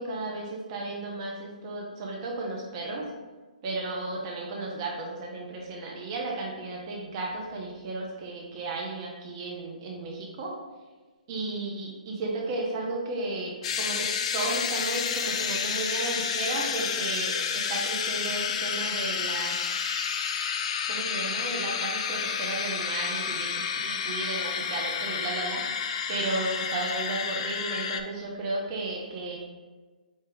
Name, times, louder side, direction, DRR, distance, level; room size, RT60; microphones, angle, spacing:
voice 1, 0.0-3.1 3.6-10.5 11.3-14.1 14.3-19.6 20.9-25.8 26.1-29.4, right 2 dB, 35° right, -2 dB, 0.7 m, -34 dB
sound 1, 13.6-28.0, left 7 dB, 45° left, 0.4 m, -30 dB
4.6 x 2.8 x 3.4 m, 1.3 s
figure-of-eight pair, 135°, 5 cm